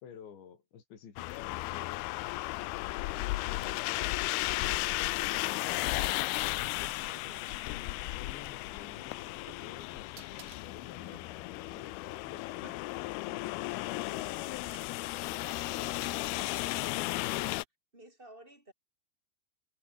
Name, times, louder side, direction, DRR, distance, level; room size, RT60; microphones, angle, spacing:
voice 1, 0.0-2.0 3.2-6.2 6.8-12.8 13.4-13.6 13.8-14.9 15.5-16.0, left 7 dB, 75° left, 6.4 m, -52 dB
sound 1, 1.2-17.6, left 20 dB, 90° left, 2.2 m, -35 dB
voice 2, 7.1-7.5 16.0-17.6 17.9-18.7, right 1 dB, 10° right, 7.0 m, -54 dB
sound 2, 9.0-13.2 14.0-17.0, right 12 dB, 80° right, 4.0 m, -58 dB
omnidirectional pair, 5.3 m